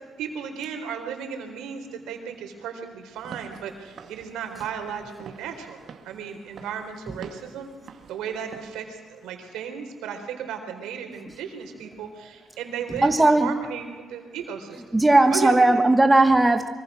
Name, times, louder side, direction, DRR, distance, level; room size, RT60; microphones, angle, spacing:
voice 1, 0.2-7.7 8.1-14.8 15.3-15.8, right 7 dB, 90° right, 5 dB, 4.0 m, -35 dB
Walk footsteps / Siren, 3.1-8.8, right 7 dB, 60° right, 2.2 m, -47 dB
voice 2, 13.0-13.5 14.9-16.7, right 2 dB, 15° right, 7 dB, 1.5 m, -17 dB
24.5 x 24.0 x 6.3 m, 1.5 s
cardioid pair, 90°, 0 cm